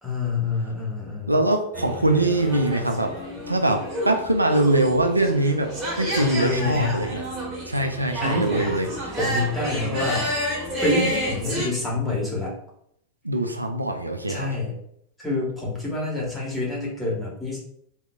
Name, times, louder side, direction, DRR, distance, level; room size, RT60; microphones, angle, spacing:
voice 1, 0.0-1.4 6.2-7.0 8.2-8.8 9.2-10.3 10.8-12.5 14.3-14.7 15.2-17.6, left 2 dB, 5° left, -5 dB, 1.5 m, -27 dB
voice 2, 1.3-3.1 3.5-7.3 7.7-8.9 13.2-14.5, right 2 dB, 85° right, 4 dB, 0.4 m, -23 dB
sound 1, 1.7-11.7, equal, 25° right, 1.4 m, -30 dB
3.9 x 2.9 x 2.3 m, 0.70 s
figure-of-eight pair, 90°, 0 cm